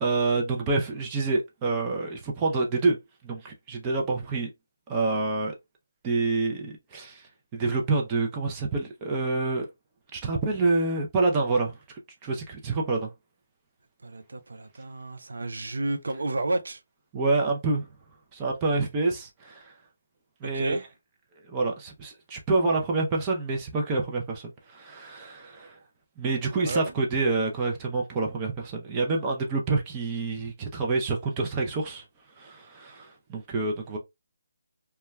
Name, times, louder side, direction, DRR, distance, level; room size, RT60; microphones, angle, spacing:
voice 1, 0.0-3.0 3.2-4.5 4.9-5.6 6.0-9.7 10.1-11.8 12.2-13.1 17.1-17.9 18.3-19.7 20.4-20.8 21.4-25.8 26.2-32.0 32.4-34.0, right 3 dB, 20° right, 0.5 m, -27 dB
voice 2, 14.0-16.8 20.4-20.8 26.5-26.9, right 2 dB, 80° right, 0.5 m, -31 dB
2.2 x 2.2 x 3.1 m
hypercardioid pair, 160°, 0 cm